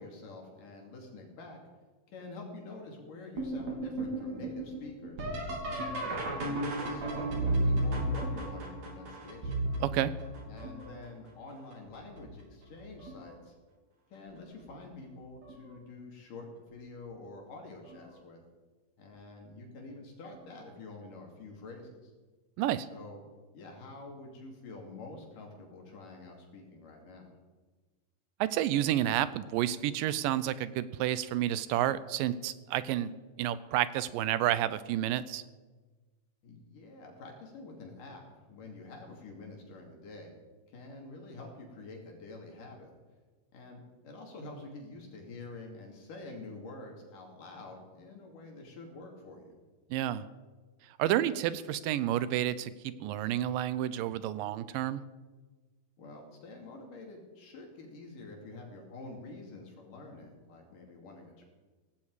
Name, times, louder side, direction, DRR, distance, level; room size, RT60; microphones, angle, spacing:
voice 1, 0.0-1.6 2.1-5.3 5.6-9.6 10.0-10.1 10.5-13.5 14.1-18.4 19.0-22.1 22.8-23.2 23.5-27.3 36.4-40.3 40.7-42.9 43.5-49.6 56.0-61.4, left 2 dB, 70° left, 1 dB, 4.2 m, -47 dB
sound 1, 3.4-11.1 11.7-12.2 12.7-13.3 14.6-14.7 15.4-15.8 17.9-18.0 20.3-20.4, right 1 dB, 55° right, 4.1 m, -34 dB
voice 2, 9.8-10.1 22.6-22.9 28.4-33.1 33.4-35.4 49.9-50.3 51.0-55.0, right 12 dB, 80° right, 15 dB, 2.3 m, -30 dB
17.0 x 16.0 x 4.9 m, 1.3 s
omnidirectional pair, 4.0 m